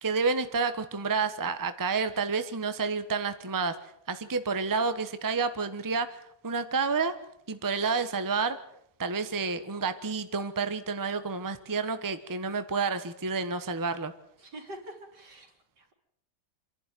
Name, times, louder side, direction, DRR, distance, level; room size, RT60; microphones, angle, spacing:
voice 1, 0.0-7.2 7.5-8.6 9.0-14.1, right 4 dB, 15° right, 10 dB, 1.0 m, -30 dB
voice 2, 14.4-15.9, right 1 dB, 75° right, 3 dB, 4.1 m, -46 dB
27.0 x 11.5 x 9.2 m, 0.72 s
omnidirectional pair, 1.8 m